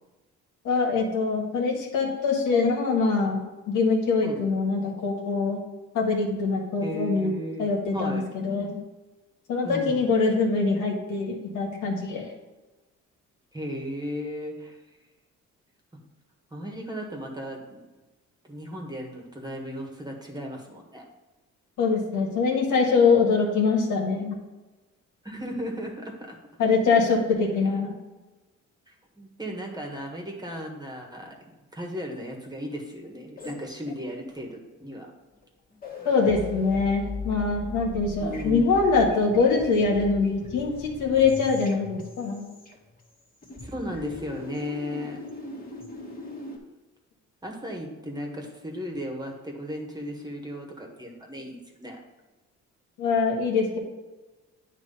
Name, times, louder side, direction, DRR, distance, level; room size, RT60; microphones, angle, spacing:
voice 1, 0.6-5.6 5.9-7.3 7.6-8.8 9.5-12.2 21.8-24.4 26.6-27.9 36.0-42.5 53.0-53.8, left 4 dB, 80° left, 0 dB, 1.7 m, -23 dB
voice 2, 6.8-8.3 9.6-10.1 13.5-14.8 16.5-17.8 18.5-21.0 25.2-26.4 28.9-35.1 38.2-38.9 43.6-45.2 47.4-52.0, equal, 15° right, 0 dB, 1.5 m, -36 dB
sound 1, 33.4-34.3 35.3-35.5 35.7-43.1 43.4-46.6, left 2 dB, 30° left, 1.7 m, -39 dB
9.4 x 3.1 x 5.5 m, 1.1 s
cardioid pair, 90°, 30 cm